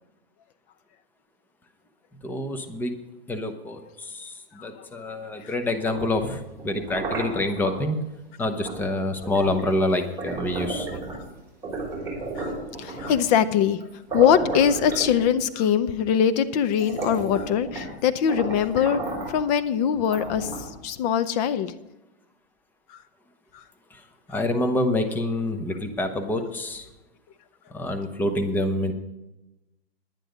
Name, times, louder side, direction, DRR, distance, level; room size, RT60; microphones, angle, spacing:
voice 1, 2.2-3.0 3.3-4.3 4.6-8.0 8.4-10.9 23.9-24.0 24.3-26.9 27.7-28.9, left 1 dB, 5° left, 6 dB, 0.8 m, -27 dB
voice 2, 4.6-4.9 5.4-5.5 12.4-19.0 19.3-21.7 22.9-23.0 23.5-23.6, left 8 dB, 40° left, 13 dB, 0.7 m, -23 dB
sound 1, 5.7-7.8 8.7-8.9 9.2-11.3 11.6-13.3 13.8-13.9 14.1-15.6 16.3-16.4 16.7-18.0 18.3-19.4 20.0-20.8, right 2 dB, 10° right, 4.5 m, -33 dB
10.5 x 9.9 x 5.1 m, 0.97 s
hypercardioid pair, 145°, 31 cm